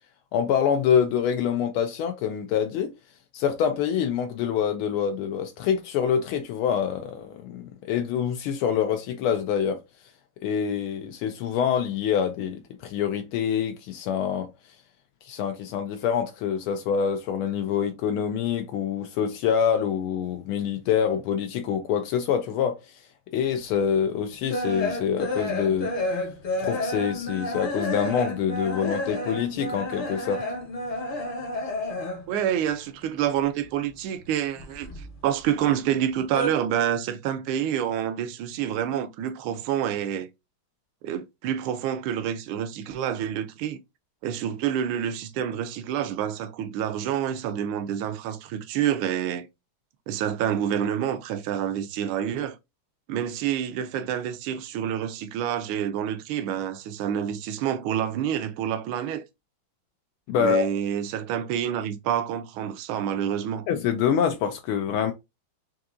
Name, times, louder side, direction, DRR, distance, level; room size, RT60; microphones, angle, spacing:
voice 1, 0.3-2.9 3.3-9.8 10.4-14.5 15.2-22.8 23.3-25.9 26.6-30.5 60.3-60.7 63.7-65.1, left 8 dB, 85° left, 1.4 m, -26 dB
sound 1, 23.6-32.4 32.7-33.9 34.2-35.5 35.8-36.5, left 1 dB, 40° left, 0.8 m, -31 dB
voice 2, 32.3-40.3 41.0-43.8 44.2-49.5 50.1-52.6 53.1-59.2 60.3-63.7, right 9 dB, 80° right, 1.4 m, -28 dB
4.8 x 2.7 x 2.5 m
omnidirectional pair, 2.3 m